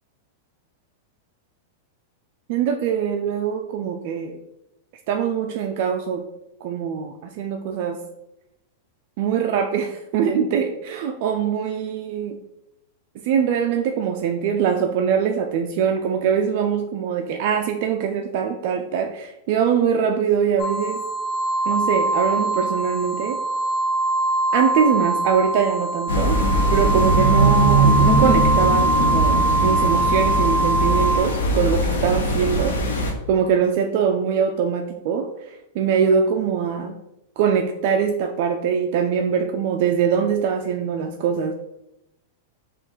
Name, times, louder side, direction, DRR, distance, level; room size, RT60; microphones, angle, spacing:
voice 1, 2.5-4.4 5.1-6.2 6.6-8.0 9.2-12.4 13.2-21.1 21.7-23.4 24.5-26.4 26.7-32.8 33.3-37.0 37.4-41.5, right 7 dB, 55° right, 4 dB, 0.4 m, -23 dB
sound 1, 20.6-31.2, right 2 dB, 50° left, 1.3 m, -22 dB
sound 2, 26.1-33.1, right 1 dB, 85° left, 0.9 m, -20 dB
4.3 x 2.5 x 4.4 m, 0.88 s
hypercardioid pair, 130°, 0 cm